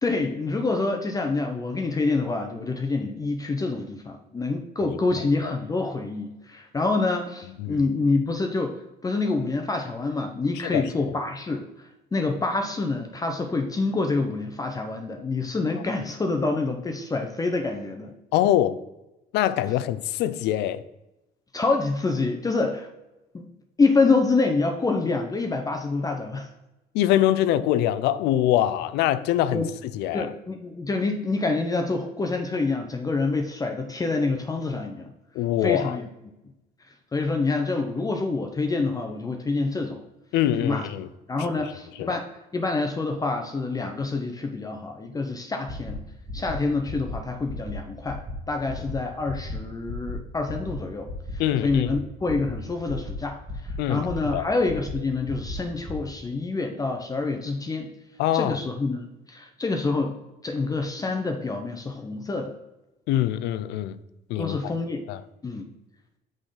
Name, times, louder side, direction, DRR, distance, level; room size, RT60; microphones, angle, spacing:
voice 1, 0.0-11.6 12.1-18.1 21.5-22.9 23.3-23.5 23.8-26.5 29.5-29.7 30.1-35.1 35.6-36.0 37.1-40.0 40.6-40.9 41.3-42.3 42.5-46.0 46.3-48.2 48.5-51.1 51.6-57.9 58.3-60.2 60.4-62.5 64.4-65.0 65.4-65.7, left 3 dB, 20° left, 3 dB, 0.7 m, -27 dB
voice 2, 10.5-10.9 18.3-18.8 19.3-20.8 26.9-29.6 29.9-30.3 35.3-36.0 40.3-41.1 41.4-41.5 42.0-42.2 51.4-51.9 53.8-54.5 58.2-58.6 63.1-64.0 64.3-64.6 65.1-65.2, left 12 dB, 85° left, 14 dB, 0.4 m, -24 dB
sound 1, 45.7-45.9 46.3-46.5 46.9-47.1 47.5-47.7 48.1-48.3 48.7-48.9 49.3-49.5 49.9-50.1 50.5-50.7 51.1-51.3 51.7-51.9 52.3-52.5 52.9-53.1 53.5-53.7 54.1-54.3 54.7-54.9 55.3-55.5 55.9-56.0, left 2 dB, 30° right, 1.5 m, -35 dB
6.2 x 5.0 x 3.8 m, 0.95 s
cardioid pair, 110°, 17 cm